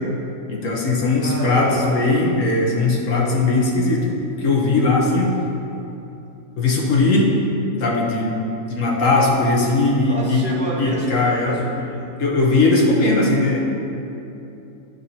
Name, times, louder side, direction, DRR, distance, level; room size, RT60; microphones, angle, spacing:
voice 1, 0.5-4.1 4.4-5.3 6.6-7.3 7.8-8.4 8.7-10.4 10.8-11.6 12.2-13.6, left 2 dB, 55° left, -2 dB, 1.2 m, -19 dB
voice 2, 1.2-2.0 10.1-12.0, right 1 dB, 5° left, -7 dB, 1.1 m, -30 dB
9.6 x 5.8 x 2.8 m, 2.8 s
omnidirectional pair, 1.7 m